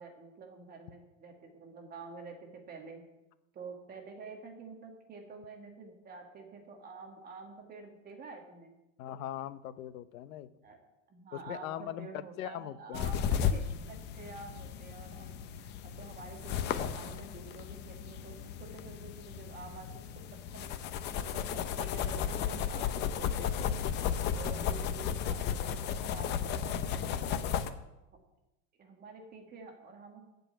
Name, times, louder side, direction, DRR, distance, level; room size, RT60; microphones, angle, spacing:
voice 1, 0.0-3.0 3.5-8.7 10.6-10.8 11.1-19.9 20.5-20.7 21.1-23.7 24.3-27.6 28.1-28.2 28.8-30.2, right 4 dB, 20° right, 2 dB, 1.7 m, -48 dB
voice 2, 9.0-10.5 11.3-13.1, left 12 dB, 75° left, 14 dB, 0.9 m, -40 dB
sound 1, 12.9-27.7, left 8 dB, 25° left, 0.5 m, -34 dB
14.5 x 5.4 x 8.9 m, 0.97 s
supercardioid pair, 165°, 41 cm